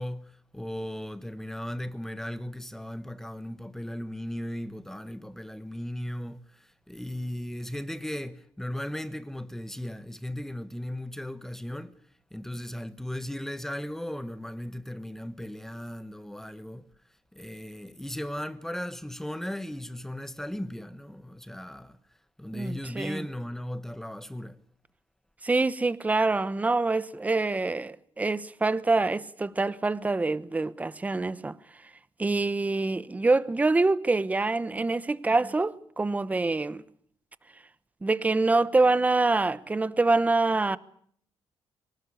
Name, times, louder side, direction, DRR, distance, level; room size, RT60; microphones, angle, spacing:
voice 1, 0.0-12.0 12.3-16.8 17.3-22.0 22.4-24.6, left 1 dB, 5° left, 1.1 m, -37 dB
voice 2, 22.5-23.2 25.4-31.6 32.2-36.8 38.0-40.8, right 3 dB, 15° right, 0.9 m, -25 dB
23.5 x 19.0 x 9.8 m
cardioid pair, 125°, 9 cm